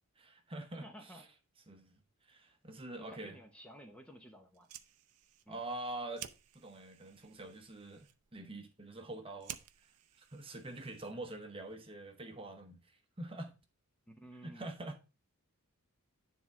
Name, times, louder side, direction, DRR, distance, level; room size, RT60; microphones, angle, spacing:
voice 1, 0.2-1.3 1.7-3.4 5.5-9.9 10.2-13.5 14.4-15.0, right 2 dB, 25° right, 1.0 m, -45 dB
voice 2, 0.8-1.2 3.0-4.7 5.5-5.6 14.1-14.7, equal, 5° left, 0.8 m, -53 dB
Fire, 4.5-11.4, right 11 dB, 90° right, 0.6 m, -53 dB
10.0 x 3.7 x 4.6 m
head